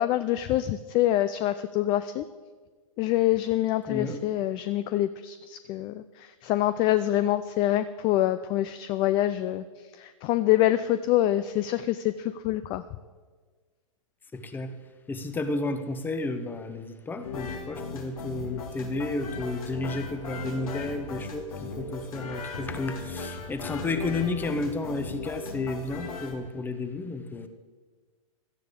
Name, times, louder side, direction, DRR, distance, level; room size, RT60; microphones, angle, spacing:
voice 1, 0.0-2.3 3.0-9.6 10.0-12.8, left 13 dB, 25° left, 13 dB, 0.3 m, -25 dB
voice 2, 3.9-4.2 14.3-14.7 15.1-27.5, left 2 dB, 10° left, 9 dB, 0.8 m, -32 dB
sound 1, 17.2-26.3, left 4 dB, 75° left, 2.2 m, -37 dB
16.5 x 12.5 x 3.7 m, 1.5 s
hypercardioid pair, 125°, 18 cm